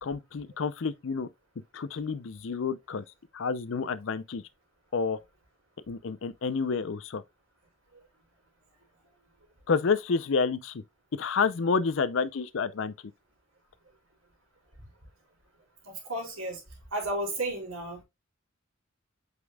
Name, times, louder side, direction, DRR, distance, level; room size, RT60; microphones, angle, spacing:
voice 1, 0.0-1.3 1.7-3.0 3.3-4.4 4.9-5.2 5.9-7.2 9.7-10.8 11.1-12.9, left 5 dB, 60° left, 0.5 m, -29 dB
voice 2, 16.1-16.6 16.9-18.0, right 1 dB, 80° right, 3.4 m, -32 dB
8.1 x 5.2 x 2.3 m
head